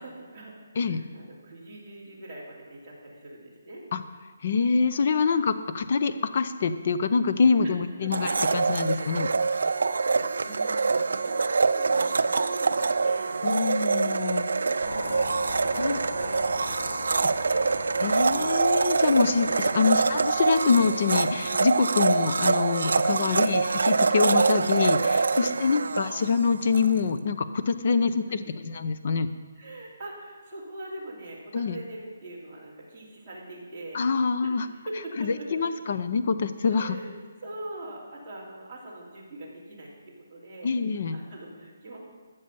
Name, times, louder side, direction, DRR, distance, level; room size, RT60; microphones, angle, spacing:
voice 1, 0.0-3.8 7.6-7.7 8.0-8.3 8.8-9.1 9.6-13.5 14.8-15.3 15.8-17.6 19.7-19.9 23.2-23.5 25.5-25.9 27.9-28.0 29.5-34.0 34.4-35.7 36.7-37.1 37.4-40.7 41.1-42.0, right 1 dB, 10° right, -10 dB, 2.6 m, -42 dB
voice 2, 4.4-9.3 13.4-14.5 15.7-16.0 18.0-29.3 31.5-31.8 33.9-34.7 35.2-37.0 40.6-41.2, left 5 dB, 35° left, 11 dB, 0.5 m, -25 dB
Domestic sounds home sounds, 8.1-26.9, right 4 dB, 70° right, 0.4 m, -25 dB
sound 1, 14.8-21.6, left 2 dB, 85° left, 3.5 m, -40 dB
14.0 x 6.8 x 6.8 m, 1.4 s
hypercardioid pair, 180°, 0 cm